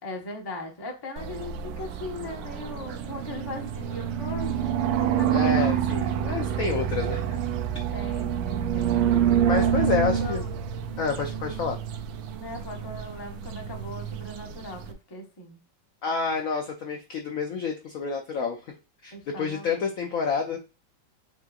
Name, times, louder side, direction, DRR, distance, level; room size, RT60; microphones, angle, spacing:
voice 1, 0.0-4.7 5.0-5.3 5.5-5.9 7.9-9.1 9.6-10.5 12.4-15.6 19.1-19.8, left 1 dB, 20° left, 1 dB, 0.6 m, -39 dB
sound 1, 1.2-14.9, right 9 dB, 80° right, 1.4 m, -27 dB
voice 2, 5.3-7.4 9.0-10.4 11.0-11.8 16.0-18.6 19.0-20.6, left 5 dB, 75° left, 3 dB, 0.8 m, -29 dB
7.4 x 2.9 x 2.4 m, 0.31 s
omnidirectional pair, 2.2 m